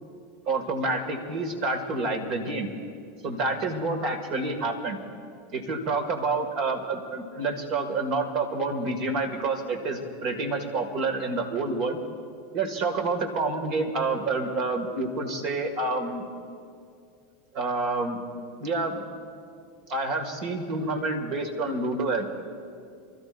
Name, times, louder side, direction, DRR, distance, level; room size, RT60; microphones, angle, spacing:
voice 1, 0.5-2.7 3.2-5.0 5.5-12.0 12.5-16.2 17.5-18.2 18.6-19.0 19.9-22.3, right 3 dB, 50° right, 4 dB, 2.2 m, -28 dB
27.5 x 13.5 x 2.6 m, 2.3 s
hypercardioid pair, 90°, 0 cm